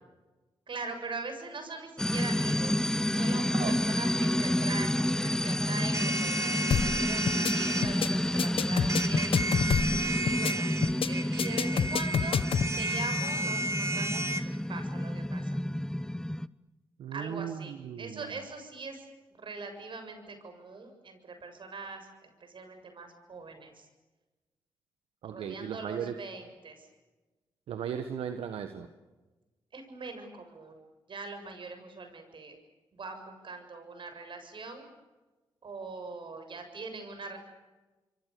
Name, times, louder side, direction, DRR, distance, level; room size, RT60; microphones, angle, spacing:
voice 1, 0.7-9.4 10.2-10.7 11.0-12.4 12.8-15.6 17.1-19.1 19.4-23.9 25.3-26.9 29.7-30.8 31.1-32.6 32.9-34.9 35.6-37.4, right 3 dB, 60° right, 7 dB, 7.1 m, -42 dB
sound 1, 2.0-16.5, left 1 dB, 5° left, 0.9 m, -30 dB
sound 2, 5.9-7.9 8.9-14.4, right 2 dB, 30° right, 2.7 m, -33 dB
sound 3, 6.7-7.0 7.3-7.5 7.8-8.1 8.4-10.0 10.3-10.5 10.8-11.1 11.4-12.7, left 7 dB, 65° left, 1.1 m, -27 dB
voice 2, 17.0-18.4 25.2-26.1 27.7-28.9, right 8 dB, 80° right, 8 dB, 1.5 m, -36 dB
28.5 x 24.5 x 6.9 m, 1.2 s
supercardioid pair, 50°, 10 cm